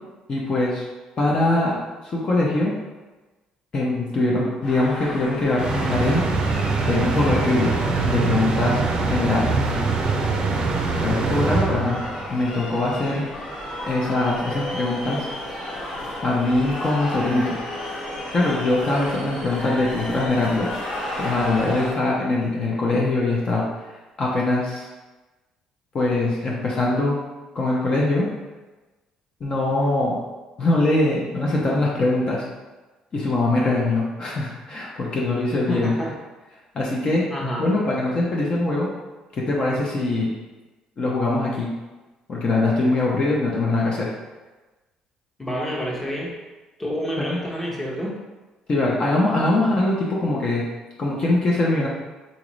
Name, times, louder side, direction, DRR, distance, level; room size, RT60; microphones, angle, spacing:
voice 1, 0.3-0.8 1.2-2.7 3.7-6.2 6.9-7.7 8.1-9.6 11.0-12.0 12.3-13.2 13.8-15.3 16.2-17.6 18.3-20.7 21.2-23.6 24.2-24.9 25.9-27.2 27.5-28.3 29.4-30.2 30.6-32.4 33.1-35.9 36.7-37.2 37.6-38.9 39.4-40.3 41.0-41.7 42.3-44.1 47.2-47.4 48.7-50.7 51.0-51.9, left 2 dB, 40° left, -4 dB, 0.7 m, -22 dB
sound 1, 4.6-21.9, left 1 dB, 60° left, 1.2 m, -33 dB
sound 2, 5.6-12.3, right 4 dB, 45° right, 0.4 m, -23 dB
voice 2, 35.7-36.1 37.3-37.6 45.4-46.3 46.8-48.2, equal, 15° left, -3 dB, 0.9 m, -28 dB
4.0 x 2.4 x 3.0 m, 1.2 s
cardioid pair, 90°, 2 cm